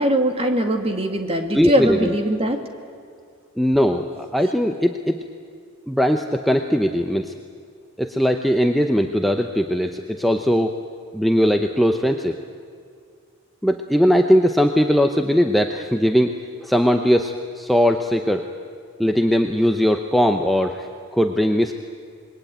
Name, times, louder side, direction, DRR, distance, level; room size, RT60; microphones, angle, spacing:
voice 1, 0.0-2.6, right 1 dB, 25° right, 5 dB, 2.1 m, -21 dB
voice 2, 1.5-2.2 3.6-5.2 5.9-7.3 8.0-10.8 11.1-12.4 13.6-16.3 16.6-18.5 19.0-20.9 21.1-21.7, equal, ahead, 4 dB, 0.7 m, -19 dB
27.0 x 21.5 x 8.9 m, 2.2 s
head